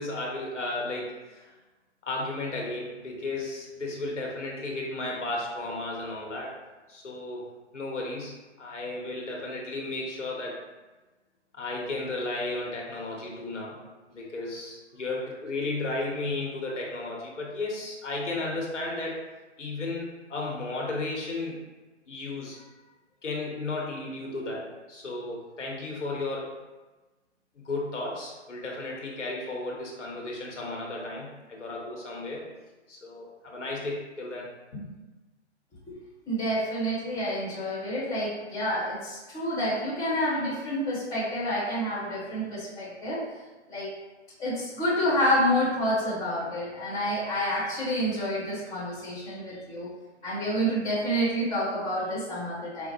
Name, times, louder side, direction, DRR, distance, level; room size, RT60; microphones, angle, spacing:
voice 1, 0.0-1.5 2.0-6.5 6.9-7.5 7.7-10.6 11.6-13.8 14.1-19.2 19.6-21.6 22.1-22.6 23.2-26.5 27.6-32.4 32.9-34.8, left 2 dB, 80° left, -2 dB, 1.2 m, -34 dB
voice 2, 36.3-43.2 43.7-43.9 44.4-49.9 50.2-52.9, equal, 10° left, -8 dB, 1.1 m, -28 dB
5.0 x 2.0 x 3.0 m, 1.2 s
figure-of-eight pair, 135°, 35 cm